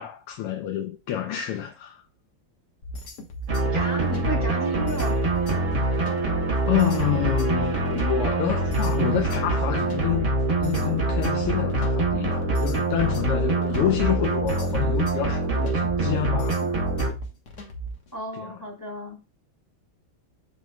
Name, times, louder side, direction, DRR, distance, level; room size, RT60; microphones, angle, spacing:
voice 1, 0.0-2.0 6.6-10.3 10.6-16.6 18.3-18.5, left 11 dB, 85° left, 1.6 m, -28 dB
sound 1, 2.8-18.1, right 1 dB, 50° left, 1.5 m, -37 dB
sound 2, 3.5-17.1, right 2 dB, 40° right, 1.3 m, -25 dB
voice 2, 3.7-5.2 18.1-19.2, right 2 dB, 10° left, 1.7 m, -32 dB
7.0 x 6.2 x 2.3 m
omnidirectional pair, 2.4 m